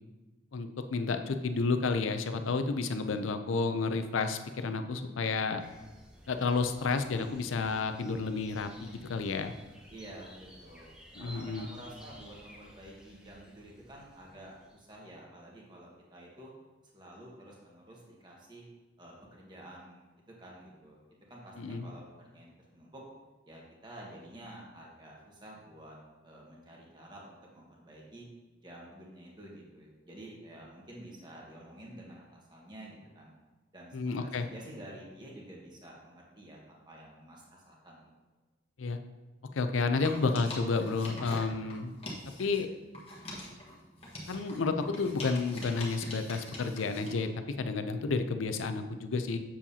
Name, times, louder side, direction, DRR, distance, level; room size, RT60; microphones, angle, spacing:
voice 1, 0.5-5.6 6.3-9.5 11.2-11.7 21.6-21.9 33.9-34.5 38.8-39.0 39.5-41.9 42.4-42.7 44.3-49.4, left 4 dB, 90° left, 8 dB, 0.5 m, -31 dB
sound 1, 5.6-15.0, equal, 5° right, 0.7 m, -54 dB
voice 2, 9.9-16.5 16.9-18.6 19.0-20.1 20.4-21.0 21.3-23.0 23.4-26.0 26.2-28.3 28.6-33.3 33.7-36.6 36.8-38.1, right 1 dB, 20° right, -3 dB, 1.4 m, -50 dB
sound 2, 40.0-42.6 42.9-47.2, left 1 dB, 30° left, 1.3 m, -44 dB
7.2 x 7.2 x 2.8 m, 1.2 s
head